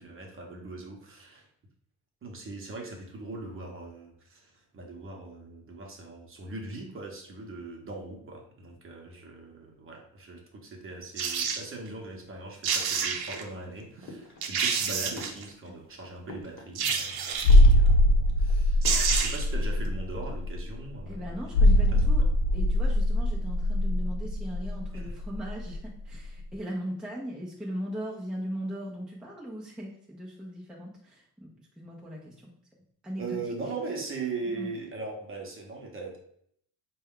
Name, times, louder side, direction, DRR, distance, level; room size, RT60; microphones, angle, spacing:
voice 1, 0.0-1.5 2.2-21.5 21.9-22.0 24.9-25.1 33.2-36.2, right 3 dB, 30° right, 1 dB, 0.8 m, -40 dB
sound 1, 11.2-11.6 12.4-12.5 12.6-13.4 14.0-14.1 14.4-15.4 16.8-17.7 18.5-18.6 18.8-19.5 19.9-20.0, right 6 dB, 65° right, 0.7 m, -29 dB
sound 2, 14.1-14.8 15.1-17.1 17.4-18.2 18.8-19.8 20.1-20.6, left 1 dB, 45° left, 1.1 m, -48 dB
sound 3, 17.4-25.8 26.1-26.3, left 1 dB, 80° left, 0.6 m, -22 dB
voice 2, 21.1-22.2 22.5-32.5 33.0-33.4 34.5-34.7, equal, ahead, -4 dB, 0.5 m, -38 dB
4.3 x 2.3 x 3.6 m, 0.67 s
cardioid pair, 140°, 40 cm